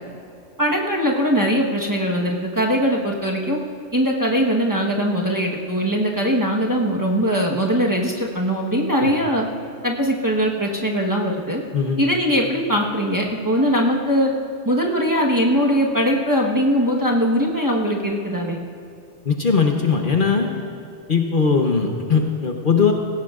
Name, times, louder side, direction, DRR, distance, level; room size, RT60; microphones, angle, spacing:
voice 1, 0.6-3.6 3.9-9.5 9.8-11.6 12.0-14.3 14.6-18.6, equal, 15° right, -3 dB, 1.2 m, -21 dB
voice 2, 19.2-20.5 21.1-22.9, left 5 dB, 50° left, 3 dB, 1.0 m, -19 dB
19.0 x 16.5 x 2.5 m, 2.5 s
omnidirectional pair, 1.2 m